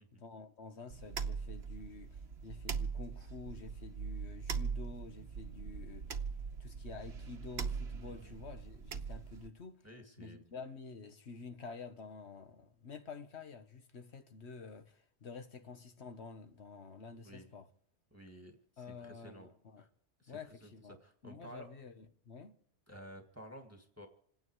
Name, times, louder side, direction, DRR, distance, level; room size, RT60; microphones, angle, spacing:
voice 1, 0.0-6.2 6.6-9.9 10.2-17.7 18.8-19.9 20.3-21.0 21.2-22.6, left 4 dB, 70° left, 1.4 m, -49 dB
sound 1, 0.9-9.5, right 6 dB, 65° right, 1.2 m, -41 dB
voice 2, 9.8-10.5 17.2-17.5 18.1-19.5 19.8-19.9 20.2-21.7 22.9-24.1, equal, 15° right, 1.8 m, -53 dB
27.5 x 9.4 x 4.7 m
omnidirectional pair, 1.2 m